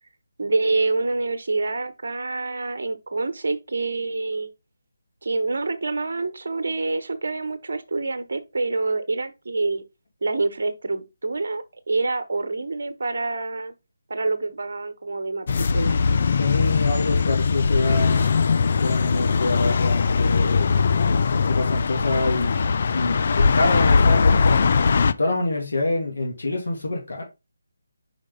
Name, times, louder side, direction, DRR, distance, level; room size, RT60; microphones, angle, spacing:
voice 1, 0.4-4.5 5.2-9.8 10.2-13.7 14.1-16.0, right 3 dB, 60° right, 1.1 m, -26 dB
sound 1, 15.5-25.1, left 5 dB, 50° left, 0.5 m, -20 dB
voice 2, 16.3-18.3 18.8-20.8 21.3-22.6 22.9-24.6 25.2-27.2, left 2 dB, 70° left, 2.5 m, -26 dB
5.1 x 5.0 x 3.8 m
figure-of-eight pair, 155°, 0 cm